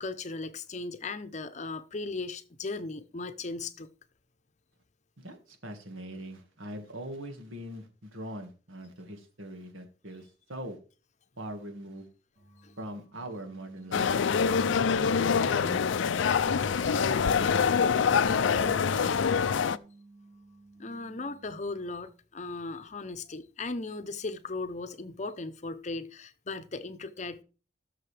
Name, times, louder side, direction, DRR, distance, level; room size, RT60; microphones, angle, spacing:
voice 1, 0.0-3.9 12.6-12.7 20.8-27.4, left 3 dB, 35° left, 0.7 m, -37 dB
voice 2, 5.2-10.8 11.4-12.1 12.8-14.1 14.5-15.8 16.4-17.4 17.8-19.2, right 1 dB, 90° right, 1.8 m, -42 dB
sound 1, 13.9-19.8, left 6 dB, 75° left, 0.4 m, -25 dB
sound 2, 18.1-22.1, right 2 dB, 50° right, 3.1 m, -57 dB
15.5 x 6.7 x 3.4 m
head